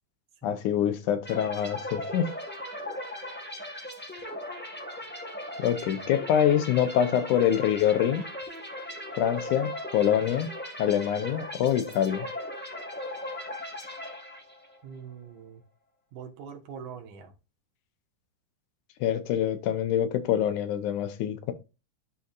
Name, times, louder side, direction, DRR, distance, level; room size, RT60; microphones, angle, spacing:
voice 1, 0.4-2.3 5.6-8.3 9.2-10.5 10.8-12.3 19.0-21.5, left 10 dB, 80° left, 2.3 m, -25 dB
sound 1, 1.2-14.8, left 1 dB, 15° left, 0.4 m, -38 dB
voice 2, 14.8-15.6 16.1-17.3, right 7 dB, 70° right, 2.8 m, -43 dB
12.5 x 4.2 x 2.5 m
omnidirectional pair, 3.7 m